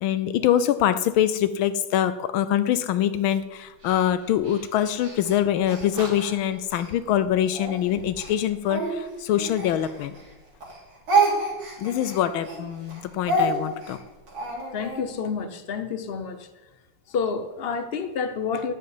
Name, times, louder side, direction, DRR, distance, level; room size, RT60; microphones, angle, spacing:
voice 1, 0.0-10.1 11.8-14.0, left 10 dB, 80° left, 13 dB, 1.4 m, -24 dB
Speech, 3.8-7.0 7.5-10.3 10.6-15.0, right 2 dB, 70° right, 4.4 m, -28 dB
voice 2, 14.7-16.5 17.1-18.7, left 5 dB, 50° left, 10 dB, 0.7 m, -29 dB
14.0 x 5.7 x 9.4 m, 1.1 s
omnidirectional pair, 2.2 m